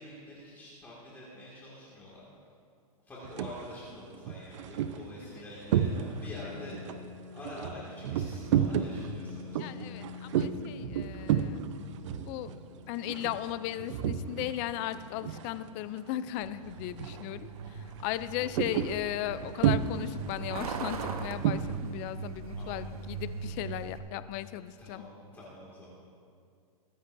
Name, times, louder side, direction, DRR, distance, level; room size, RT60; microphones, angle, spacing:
voice 1, 0.0-2.2 3.0-6.8 7.3-10.0 18.3-18.6 22.5-22.8 24.8-25.9, left 1 dB, 10° left, -7 dB, 2.0 m, -46 dB
sound 1, 3.2-3.6 4.1-6.4 6.7-14.6 14.9-16.0 16.3-16.5 16.9-17.3 17.6-21.8, right 9 dB, 55° right, 0.6 m, -32 dB
Piano, 5.7-21.1, left 6 dB, 90° right, 2.7 m, -50 dB
voice 2, 9.6-11.6 12.3-12.5 12.9-25.0, left 13 dB, 25° left, 13 dB, 0.3 m, -37 dB
Truck, 16.4-24.0, right 5 dB, 75° right, 1.2 m, -40 dB
23.0 x 10.0 x 2.6 m, 2.3 s
hypercardioid pair, 150°, 19 cm